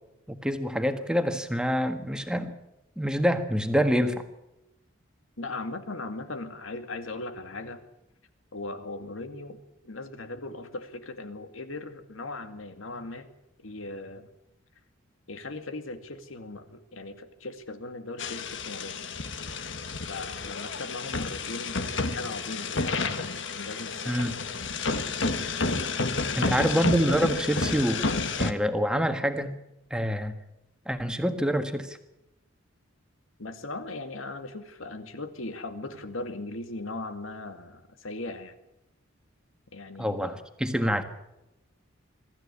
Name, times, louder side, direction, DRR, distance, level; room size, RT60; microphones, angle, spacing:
voice 1, 0.3-2.5 3.0-4.2 24.0-24.3 26.4-28.0 28.4-29.5 29.9-30.3 30.8-32.0 40.0-41.0, equal, 5° right, 7 dB, 1.6 m, -26 dB
voice 2, 5.4-7.8 8.5-13.3 13.6-14.3 15.3-19.0 20.1-24.2 26.3-26.7 33.4-38.6 39.7-40.4, left 2 dB, 80° left, 9 dB, 2.2 m, -38 dB
sound 1, 18.2-28.5, left 3 dB, 60° left, 1.5 m, -30 dB
23.5 x 14.0 x 9.9 m, 0.90 s
head